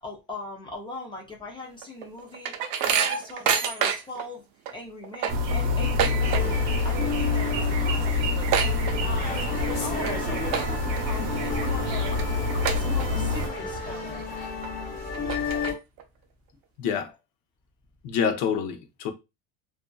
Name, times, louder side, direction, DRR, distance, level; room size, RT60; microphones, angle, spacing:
voice 1, 0.0-4.4 4.7-8.9 9.3-12.1 12.7-14.2, left 2 dB, 15° left, 0.4 m, -40 dB
sound 1, 1.8-4.3 4.7-4.8 5.0-6.8 7.0-7.4 7.7-7.8 8.0-9.4 9.9-10.1 10.5-11.0 11.5-11.6 12.2-12.3 12.7-13.4 13.8-13.9 14.6-14.7 15.1-16.0, right 8 dB, 60° right, 0.6 m, -27 dB
sound 2, 5.3-13.5, left 2 dB, 90° right, 0.8 m, -27 dB
sound 3, 6.2-15.7, left 4 dB, 35° left, 1.3 m, -33 dB
voice 2, 16.8-17.1 18.0-19.1, left 7 dB, 65° left, 0.7 m, -27 dB
2.6 x 2.4 x 2.2 m
cardioid pair, 155°, 32 cm